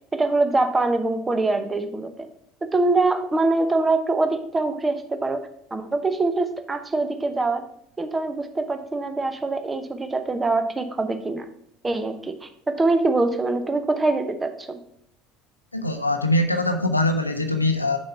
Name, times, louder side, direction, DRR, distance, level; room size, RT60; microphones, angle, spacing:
voice 1, 0.1-2.1 2.7-7.6 8.0-11.4 11.8-14.8, right 2 dB, 20° right, 8 dB, 0.8 m, -24 dB
voice 2, 15.7-18.0, left 1 dB, 90° left, 6 dB, 0.5 m, -22 dB
6.6 x 5.4 x 4.4 m, 0.69 s
figure-of-eight pair, 65°, 0 cm